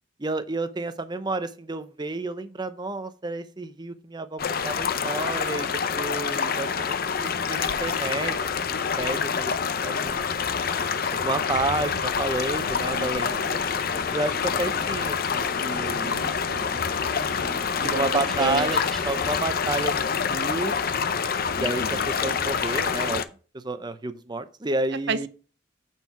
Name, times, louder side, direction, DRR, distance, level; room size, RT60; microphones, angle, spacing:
voice 1, 0.2-6.7 7.4-9.5 9.8-10.4 11.1-13.6 14.1-16.1 16.7-16.8 17.1-20.8 21.6-23.2 23.5-25.3, right 2 dB, 20° right, 0.7 m, -31 dB
sound 1, 4.4-23.2, left 6 dB, 50° left, 0.6 m, -27 dB
sound 2, 7.8-22.1, left 3 dB, 85° left, 0.9 m, -46 dB
sound 3, 12.6-19.4, equal, ahead, 1.2 m, -43 dB
voice 2, 12.9-13.6 16.0-16.8 17.8-18.8 21.6-22.1 25.1-25.3, right 5 dB, 60° right, 0.6 m, -33 dB
8.8 x 4.6 x 5.8 m
head